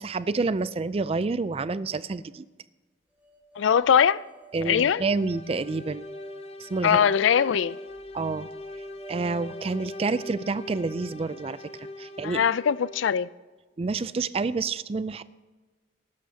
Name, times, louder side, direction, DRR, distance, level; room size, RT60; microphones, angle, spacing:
voice 1, 0.0-2.4 4.5-6.1 6.6-7.1 8.1-8.5 9.1-12.5 13.8-15.2, right 3 dB, 30° right, 0.4 m, -28 dB
sound 1, 3.2-12.4, right 3 dB, 10° right, 3.5 m, -50 dB
voice 2, 3.6-4.2 4.7-5.0 6.8-7.8 12.2-13.3, left 8 dB, 85° left, 0.4 m, -21 dB
sound 2, 4.8-13.2, left 2 dB, 35° left, 0.7 m, -42 dB
19.5 x 11.5 x 2.8 m
head